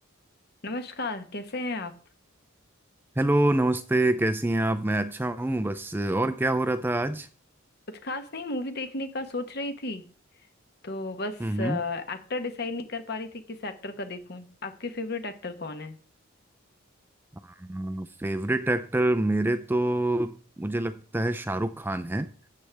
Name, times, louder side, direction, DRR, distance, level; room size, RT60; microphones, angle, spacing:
voice 1, 0.6-1.9 7.9-10.0 10.8-16.0, left 2 dB, 50° left, 1.1 m, -34 dB
voice 2, 3.2-7.3 11.4-11.8 17.4-22.3, right 1 dB, 10° right, 0.4 m, -26 dB
12.5 x 8.5 x 3.4 m
head